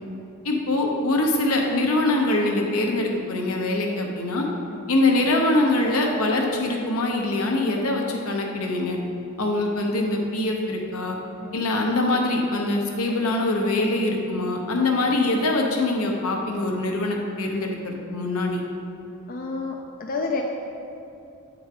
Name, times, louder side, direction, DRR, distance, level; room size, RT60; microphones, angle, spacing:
voice 1, 0.4-4.5 4.9-9.0 9.4-11.2 11.5-18.6, left 2 dB, 80° left, 1 dB, 0.9 m, -23 dB
voice 2, 19.3-20.4, left 4 dB, 40° left, 1 dB, 0.4 m, -30 dB
7.7 x 3.9 x 4.8 m, 2.8 s
head